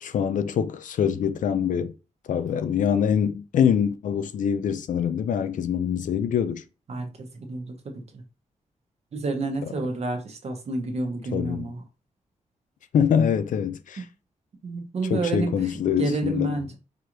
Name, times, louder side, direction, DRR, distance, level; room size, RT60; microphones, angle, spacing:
voice 1, 0.0-1.9 2.3-6.6 11.3-11.7 12.9-14.0 15.1-16.5, left 8 dB, 75° left, 0.4 m, -24 dB
voice 2, 6.9-8.2 9.1-11.8 14.0-14.1 14.6-15.7 16.0-16.8, right 3 dB, 55° right, 1.0 m, -30 dB
4.8 x 2.5 x 3.0 m
wide cardioid pair, 140°, 13 cm